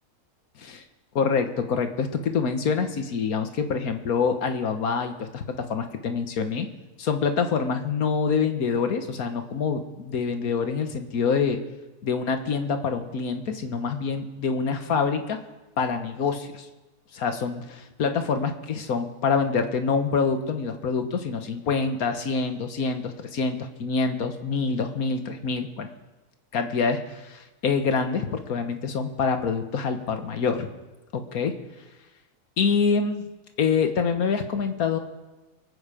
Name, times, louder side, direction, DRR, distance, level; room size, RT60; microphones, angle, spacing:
voice 1, 1.2-6.7 7.0-11.6 12.0-15.4 15.8-16.7 17.1-25.9 26.5-30.7 31.1-31.5 32.6-33.3 33.6-35.0, left 5 dB, 85° left, 7 dB, 1.7 m, -26 dB
24.0 x 8.8 x 5.0 m, 1.1 s
omnidirectional pair, 1.5 m